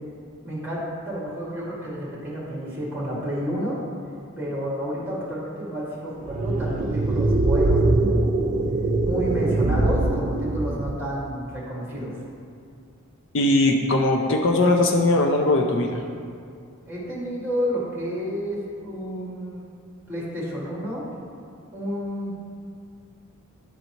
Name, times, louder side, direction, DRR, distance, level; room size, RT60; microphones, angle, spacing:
voice 1, 0.4-3.9 4.4-8.3 9.0-12.1 16.9-19.6 20.1-21.0 21.7-22.3, equal, 10° right, -7 dB, 1.9 m, -30 dB
sound 1, 6.2-11.1, right 2 dB, 35° right, 0.4 m, -22 dB
voice 2, 13.3-16.0, left 2 dB, 55° left, 2 dB, 0.5 m, -20 dB
10.5 x 4.0 x 4.4 m, 2.3 s
head